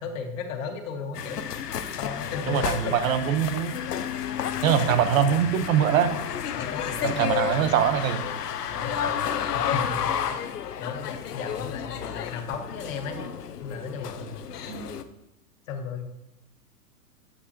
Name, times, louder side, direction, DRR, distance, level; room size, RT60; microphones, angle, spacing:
voice 1, 0.0-3.0 4.8-5.4 6.5-7.7 8.7-13.2 13.6-14.3 15.7-16.1, left 5 dB, 55° left, 4 dB, 1.7 m, -35 dB
sound 1, 1.1-15.0, left 8 dB, 80° left, 0.8 m, -31 dB
voice 2, 2.5-3.8 4.6-6.1 7.0-8.2 14.7-14.9, right 8 dB, 60° right, 10 dB, 1.1 m, -23 dB
8.4 x 8.4 x 2.8 m, 0.87 s
hypercardioid pair, 115°, 47 cm